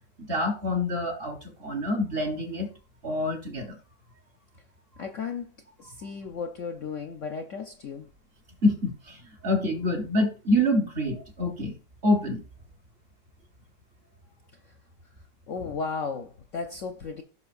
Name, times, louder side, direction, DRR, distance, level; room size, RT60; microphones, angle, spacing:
voice 1, 0.2-2.7 3.0-3.8 8.6-11.7 12.0-12.4, left 1 dB, 35° right, 1.2 m, -26 dB
voice 2, 5.0-5.5 5.8-8.1 14.6-14.8 15.5-17.2, left 5 dB, 60° left, 0.8 m, -35 dB
16.5 x 5.7 x 2.5 m
omnidirectional pair, 1.9 m